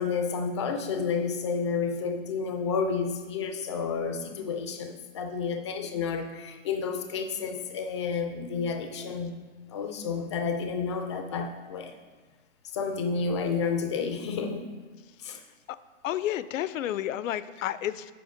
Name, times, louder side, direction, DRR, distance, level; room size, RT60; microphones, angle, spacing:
voice 1, 0.0-9.3 9.7-11.9 12.7-14.6 15.2-15.4, left 5 dB, 25° left, 6 dB, 0.4 m, -30 dB
voice 2, 16.0-18.1, left 12 dB, 80° left, 15 dB, 0.5 m, -31 dB
7.8 x 5.1 x 5.1 m, 1.3 s
hypercardioid pair, 160°, 39 cm